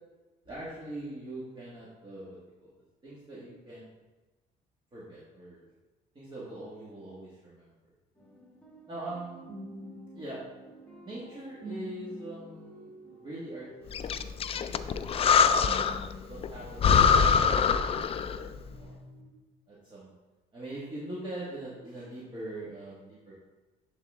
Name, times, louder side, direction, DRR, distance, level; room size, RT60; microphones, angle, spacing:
voice 1, 0.5-2.7 3.0-3.9 4.9-5.7 6.1-7.7 8.9-9.4 10.1-10.4 11.0-13.9 14.2-14.4 16.3-18.4 18.8-19.0 19.7-20.1 20.5-23.4, right 1 dB, 30° right, -8 dB, 2.0 m, -42 dB
sound 1, 8.2-18.2 18.5-19.3, right 1 dB, 10° left, 1.6 m, -48 dB
Breathing, 13.9-16.1 16.4-16.5 16.8-18.5, left 6 dB, 35° left, 0.4 m, -23 dB
11.0 x 4.0 x 3.6 m, 1.2 s
cardioid pair, 110°, 17 cm